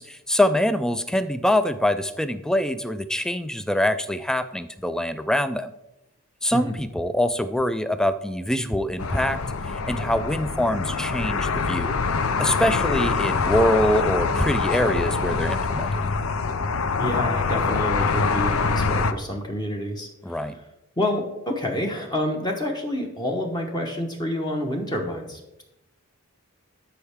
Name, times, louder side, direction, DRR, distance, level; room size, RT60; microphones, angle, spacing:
voice 1, 0.0-5.7 6.4-9.4 9.7-11.9 12.4-15.9 20.2-20.5, left 1 dB, 5° left, 12 dB, 0.3 m, -24 dB
sound 1, 9.0-19.1, left 4 dB, 70° left, 0.6 m, -24 dB
voice 2, 17.0-20.6 21.0-25.6, left 1 dB, 20° left, 1 dB, 1.0 m, -28 dB
12.5 x 5.5 x 3.5 m, 0.91 s
head